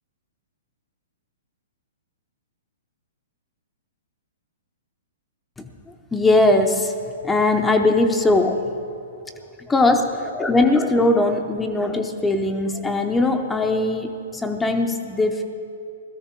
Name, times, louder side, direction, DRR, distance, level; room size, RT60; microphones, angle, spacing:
voice 1, 6.1-6.9 7.2-8.6 9.7-15.4, left 2 dB, 10° left, 4 dB, 0.7 m, -20 dB
16.5 x 13.0 x 4.5 m, 2.6 s
hypercardioid pair, 135°, 0 cm